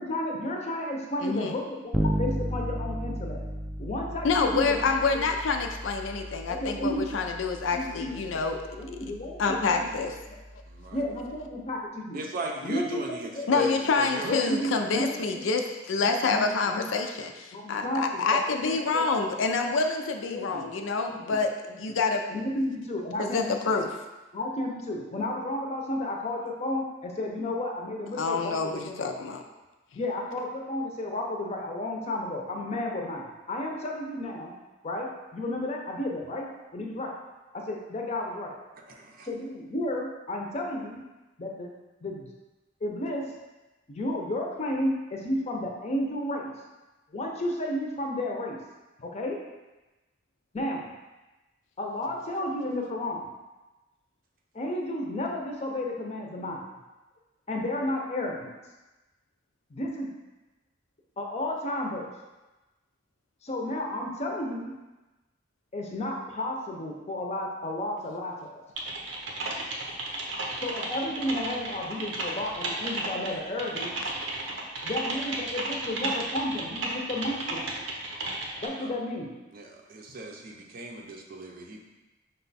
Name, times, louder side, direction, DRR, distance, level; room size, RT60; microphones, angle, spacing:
voice 1, 0.0-3.4 3.8-4.8 5.1-5.2 6.5-7.1 7.7-8.2 8.8-10.4 10.9-12.2 12.6-13.7 14.2-15.4 16.0-16.9 17.5-19.1 20.3-20.6 21.1-21.4 21.7-21.8 22.3-23.7 24.3-29.0 30.0-34.6 34.8-37.1 37.5-38.5 39.2-41.0 41.4-41.7 42.0-42.3 42.8-43.2 43.9-46.6 47.1-48.6 49.0-49.4 50.5-50.8 51.8-53.3 54.5-56.6 57.5-58.5 59.7-60.2 61.2-62.1 63.4-64.7 65.7-68.6 70.6-73.9 74.8-77.7 78.6-79.3, left 1 dB, 35° left, 0 dB, 0.6 m, -32 dB
voice 2, 1.2-1.6 4.2-8.6 9.4-10.2 13.5-21.5 21.8-22.2 23.2-24.0 28.2-29.4, left 4 dB, 80° left, 4 dB, 0.4 m, -27 dB
Bass guitar, 1.9-11.6, right 1 dB, 5° right, 0.3 m, -35 dB
voice 3, 10.7-11.0 12.1-14.8 38.9-39.3 78.7-78.9 79.5-81.8, right 2 dB, 50° right, 1 dB, 0.6 m, -38 dB
Typing, 68.8-78.7, right 2 dB, 85° right, 0.7 m, -33 dB
5.3 x 2.3 x 4.0 m, 1.1 s
head